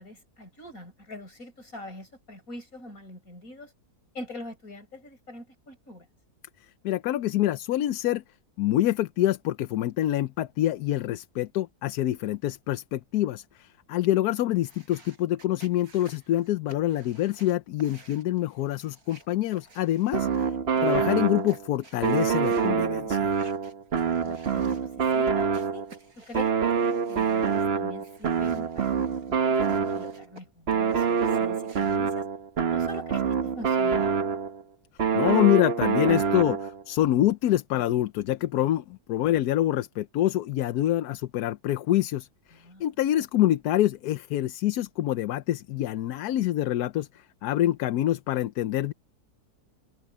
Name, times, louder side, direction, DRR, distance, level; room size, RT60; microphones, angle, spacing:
voice 1, 0.0-3.7 4.1-6.1 20.2-20.3 24.2-25.9 26.2-32.3 32.7-34.1 42.5-42.9, left 2 dB, 60° left, 6.4 m, -43 dB
voice 2, 6.8-8.2 8.6-20.5 20.8-23.3 35.1-48.9, left 13 dB, 80° left, 1.2 m, -26 dB
sound 1, 14.5-20.5 20.7-22.7 23.2-25.2 25.5-27.7 28.0-30.4 30.7-32.0, right 3 dB, 65° right, 5.2 m, -54 dB
sound 2, 20.1-21.7 22.0-26.0 26.3-30.2 30.7-34.6 35.0-36.8, right 6 dB, 45° right, 1.2 m, -26 dB
omnidirectional pair, 1.7 m